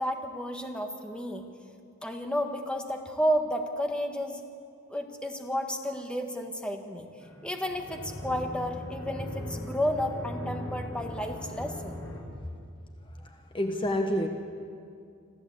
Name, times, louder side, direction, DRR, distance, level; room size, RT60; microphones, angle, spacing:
voice 1, 0.0-1.4 2.0-4.4 4.9-7.1 7.4-12.0, equal, 5° left, 3 dB, 1.5 m, -31 dB
sound 1, 7.2-12.2, left 1 dB, 70° left, 5.7 m, -39 dB
voice 2, 13.0-14.3, equal, 25° left, 4 dB, 1.2 m, -29 dB
26.0 x 14.5 x 8.4 m, 2.3 s
head